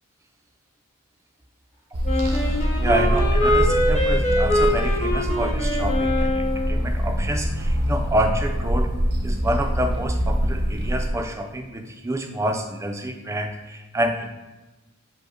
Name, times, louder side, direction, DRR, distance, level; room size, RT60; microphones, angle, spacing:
sound 1, 1.9-11.1, equal, 80° right, 0.8 m, -24 dB
Wind instrument woodwind instrument, 2.0-6.8, left 1 dB, 35° left, 0.7 m, -23 dB
voice 1, 2.1-8.9 9.2-14.3, right 1 dB, 15° right, 4 dB, 0.4 m, -28 dB
5.0 x 2.1 x 4.8 m, 1.1 s
head